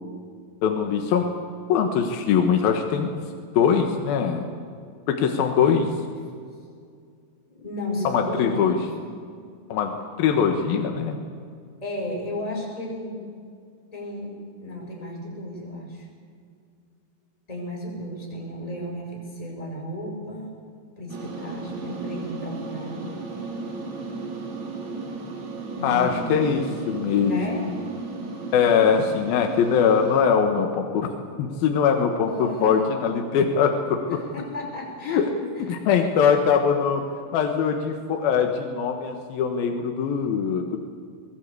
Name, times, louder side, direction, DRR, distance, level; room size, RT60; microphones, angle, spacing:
voice 1, 0.6-1.3 1.7-3.2 3.5-4.4 5.1-5.9 8.0-8.8 9.7-11.2 25.8-27.8 28.5-31.1 31.4-34.2 35.1-35.3 35.7-37.0 37.3-40.8, left 7 dB, 75° left, 3 dB, 3.2 m, -22 dB
voice 2, 7.5-8.7 11.8-13.2 13.9-14.3 14.6-16.1 17.5-20.5 21.0-23.2 25.7-26.5 27.1-27.6 32.3-33.2 34.1-35.2 35.6-35.8, left 1 dB, 10° left, -1 dB, 5.3 m, -33 dB
sound 1, 21.1-30.2, right 3 dB, 50° right, 3.6 m, -35 dB
22.5 x 20.0 x 8.4 m, 2.2 s
omnidirectional pair, 4.3 m